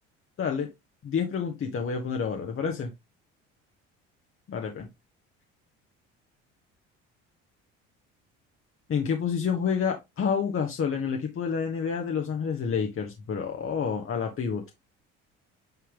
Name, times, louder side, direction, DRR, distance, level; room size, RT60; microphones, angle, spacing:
voice 1, 0.4-0.7 1.0-2.9 4.5-4.9 8.9-14.6, left 6 dB, 45° left, 3 dB, 1.5 m, -29 dB
9.3 x 3.3 x 3.8 m, 0.21 s
supercardioid pair, 85°, 30 cm